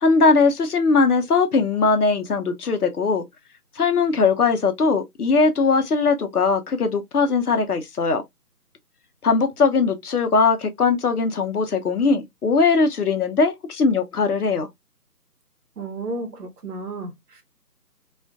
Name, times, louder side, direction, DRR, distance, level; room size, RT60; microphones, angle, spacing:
voice 1, 0.0-3.2 3.8-8.2 9.2-14.7, left 4 dB, 70° left, 0.7 m, -20 dB
voice 2, 15.8-17.4, right 2 dB, 70° right, 1.0 m, -33 dB
2.4 x 2.3 x 2.3 m
figure-of-eight pair, 165°, 48 cm